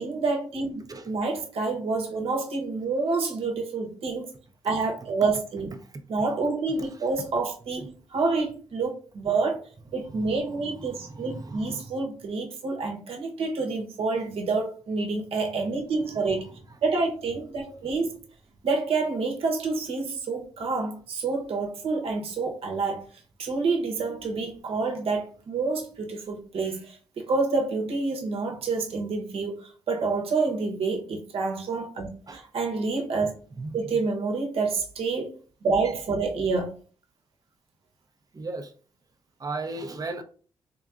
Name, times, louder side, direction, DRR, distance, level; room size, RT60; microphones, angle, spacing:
voice 1, 0.0-4.3 4.6-5.7 6.1-9.6 9.9-16.4 16.8-18.1 18.6-23.0 23.4-33.4 33.7-35.3 35.6-36.8, right 3 dB, 70° right, 1.0 m, -28 dB
voice 2, 6.8-7.2 10.0-11.9 16.1-16.6 17.9-18.0 32.3-32.4 33.5-33.9 35.8-35.9 38.3-38.7 39.4-40.2, right 3 dB, 35° right, 0.7 m, -38 dB
3.7 x 3.4 x 2.5 m
supercardioid pair, 55°, 10 cm